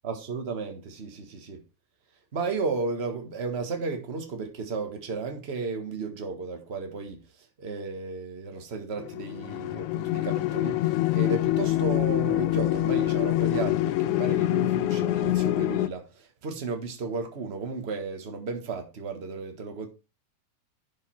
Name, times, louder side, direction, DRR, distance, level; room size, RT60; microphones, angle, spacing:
voice 1, 0.0-1.6 2.3-7.2 7.6-19.9, right 4 dB, 30° right, 1.2 m, -34 dB
sound 1, 9.0-15.9, left 16 dB, 85° left, 2.0 m, -25 dB
11.0 x 5.3 x 4.5 m
omnidirectional pair, 3.3 m